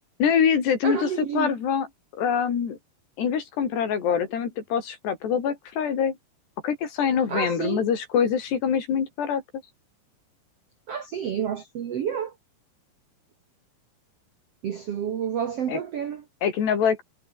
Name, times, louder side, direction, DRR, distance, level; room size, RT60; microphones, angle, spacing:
voice 1, 0.2-1.9 2.1-2.8 3.2-6.2 6.6-9.4 15.7-15.8 16.4-17.0, left 7 dB, 80° left, 5.9 m, -24 dB
voice 2, 0.8-1.5 7.3-7.8 10.9-12.3 14.6-16.2, right 8 dB, 65° right, 1.5 m, -29 dB
omnidirectional pair, 4.7 m